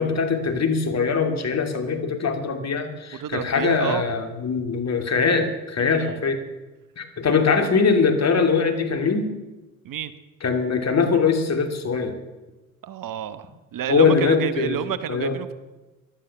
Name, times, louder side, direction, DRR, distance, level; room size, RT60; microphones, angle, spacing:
voice 1, 0.0-6.4 7.0-9.4 10.4-12.1 13.9-14.8 15.1-15.4, left 5 dB, 40° left, 5 dB, 2.7 m, -22 dB
voice 2, 3.2-4.0 5.8-6.2 9.8-10.1 12.8-15.5, right 10 dB, 50° right, 13 dB, 1.1 m, -29 dB
15.5 x 11.5 x 7.0 m, 1.1 s
hypercardioid pair, 60°, 41 cm